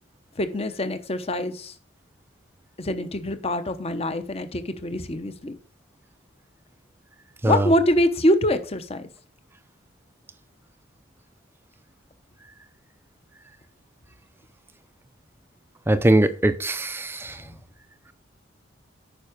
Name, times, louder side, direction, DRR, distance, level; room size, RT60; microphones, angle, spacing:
voice 1, 0.4-1.7 2.8-5.6 7.4-9.1 17.4-17.6, left 1 dB, 30° left, 0.8 m, -24 dB
voice 2, 15.9-17.4, right 1 dB, 10° right, 0.5 m, -21 dB
9.0 x 5.7 x 5.1 m
head